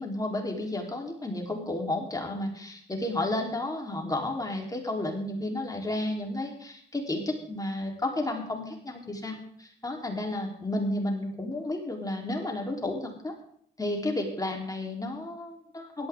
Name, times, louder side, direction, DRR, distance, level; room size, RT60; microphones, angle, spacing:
voice 1, 0.0-13.3 13.8-16.1, left 1 dB, 20° left, 1 dB, 3.7 m, -32 dB
16.5 x 13.0 x 3.8 m, 0.62 s
cardioid pair, 90°, 20 cm